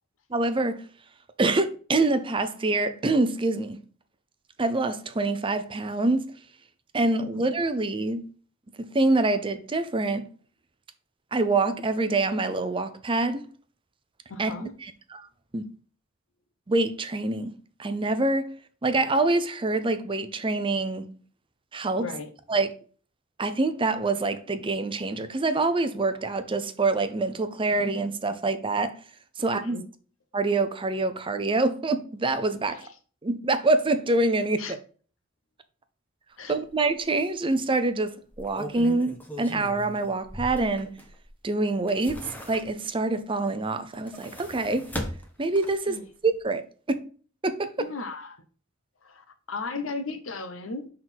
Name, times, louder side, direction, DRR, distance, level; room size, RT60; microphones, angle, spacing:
voice 1, 0.3-0.8 1.4-3.8 4.6-6.2 6.9-8.2 8.8-10.2 11.3-13.5 14.4-14.5 14.8-15.3 15.5-15.6 16.7-17.5 17.8-18.4 18.8-21.1 21.7-22.1 22.5-22.7 23.4-29.0 29.4-29.8 30.3-32.8 33.2-34.8 36.5-40.9 41.4-44.9 45.4-46.0 46.2-46.6 46.9-47.0 47.4-47.9, right 2 dB, 25° right, 0.6 m, -25 dB
voice 2, 14.3-14.7 22.0-22.3 29.6-29.8 32.7-32.9 34.6-34.8 36.4-36.6 45.9-46.0 47.8-48.4 49.0-50.9, left 3 dB, 80° left, 0.9 m, -36 dB
sound 1, 36.6-36.8 37.2-37.3 38.2-41.3 41.7-43.0 43.8-45.9 46.3-46.4, left 1 dB, 10° left, 1.0 m, -39 dB
6.1 x 3.7 x 4.4 m
head